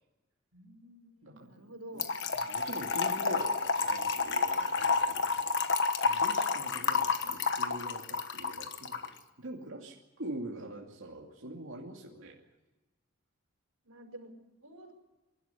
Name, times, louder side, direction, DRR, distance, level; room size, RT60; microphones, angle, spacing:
voice 1, 0.5-2.1 13.8-14.3 14.6-14.9, right 1 dB, 90° right, 3 dB, 5.5 m, -50 dB
Trickle dribble / Fill (with liquid), 2.0-9.1, left 4 dB, 55° left, 1.3 m, -30 dB
voice 2, 2.3-5.6 6.0-12.3, right 1 dB, 65° right, -2 dB, 2.6 m, -44 dB
27.0 x 12.5 x 9.9 m, 1.1 s
head